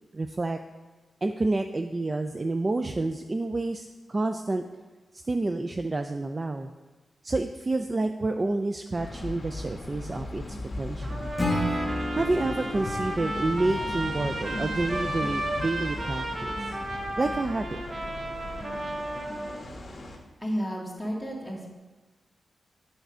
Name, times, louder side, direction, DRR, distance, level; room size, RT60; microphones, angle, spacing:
voice 1, 0.1-0.6 1.2-4.6 5.1-6.7 7.2-11.3 12.2-16.7 17.2-17.8, right 2 dB, 30° right, 7 dB, 0.3 m, -29 dB
sound 1, 8.9-20.2, left 2 dB, 45° left, 1.3 m, -37 dB
Trumpet, 11.0-19.6, right 1 dB, 50° right, 0.9 m, -34 dB
Acoustic guitar / Strum, 11.4-14.5, left 1 dB, 15° left, 1.3 m, -32 dB
voice 2, 20.4-21.7, equal, 5° right, -2 dB, 1.9 m, -32 dB
8.1 x 4.4 x 6.1 m, 1.2 s
wide cardioid pair, 95°, 0 cm